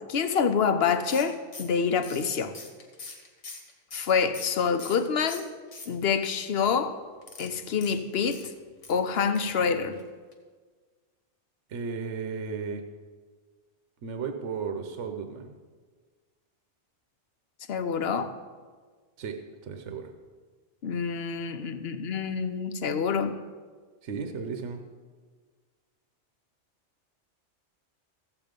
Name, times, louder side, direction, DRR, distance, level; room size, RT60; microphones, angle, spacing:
voice 1, 0.1-2.5 3.9-5.5 5.9-7.0 7.4-8.4 8.9-10.0 17.7-18.3 20.8-23.4, left 6 dB, 60° left, 9 dB, 0.9 m, -27 dB
sound 1, 1.1-5.0 5.3-6.3 7.2-9.0 9.3-9.7 9.9-10.0 10.3-10.4, left 3 dB, 80° left, 1.7 m, -44 dB
voice 2, 11.7-12.9 14.0-15.5 19.2-20.1 24.0-24.8, right 5 dB, 75° right, 6 dB, 1.1 m, -35 dB
14.0 x 7.9 x 5.2 m, 1.5 s
omnidirectional pair, 1.3 m